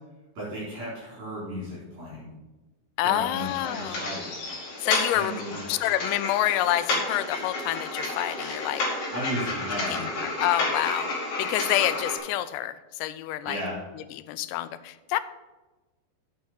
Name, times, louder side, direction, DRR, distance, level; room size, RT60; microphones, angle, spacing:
voice 1, 0.3-2.3 3.0-4.2 5.1-5.6 9.1-10.1 13.5-13.8, equal, 40° right, -9 dB, 5.0 m, -34 dB
voice 2, 3.0-4.1 4.8-5.4 5.7-8.8 9.7-11.1 11.4-13.6 14.0-15.2, left 14 dB, 85° left, 13 dB, 2.7 m, -28 dB
sound 1, 3.4-12.2, left 2 dB, 45° left, 3.4 m, -31 dB
8.3 x 7.7 x 6.5 m, 1.2 s
omnidirectional pair, 4.8 m